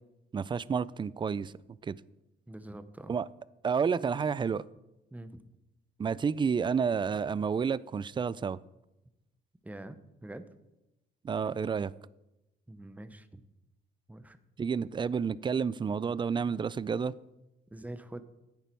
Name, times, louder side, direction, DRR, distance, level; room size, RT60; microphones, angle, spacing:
voice 1, 0.3-1.5 1.8-2.0 3.1-3.3 3.6-4.6 6.0-8.6 11.2-11.9 14.6-17.2, right 6 dB, 25° right, 20 dB, 0.3 m, -30 dB
voice 2, 2.5-3.2 5.1-5.4 9.6-10.4 12.7-13.4 14.1-14.4 17.7-18.2, right 1 dB, 5° right, 12 dB, 0.8 m, -45 dB
10.5 x 9.0 x 4.5 m, 0.96 s
cardioid pair, 90°, 20 cm